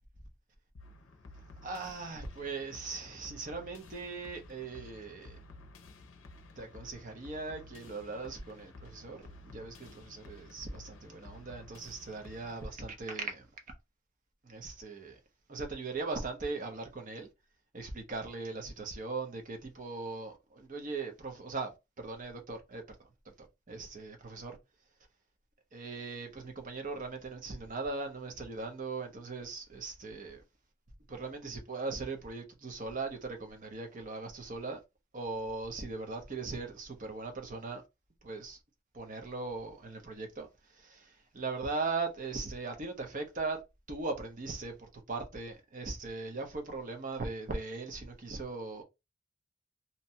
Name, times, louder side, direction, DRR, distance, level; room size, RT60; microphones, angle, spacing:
sound 1, 0.8-12.8, left 2 dB, 80° left, 0.5 m, -53 dB
voice 1, 1.6-5.4 6.6-13.5 14.4-15.2 15.5-17.3 17.7-21.7 22.0-23.0 23.4-24.6 25.7-30.4 31.1-34.8 35.1-37.8 38.2-38.6 38.9-40.5 40.8-43.6 43.9-48.8, right 3 dB, 40° right, 0.7 m, -39 dB
2.7 x 2.2 x 2.7 m
head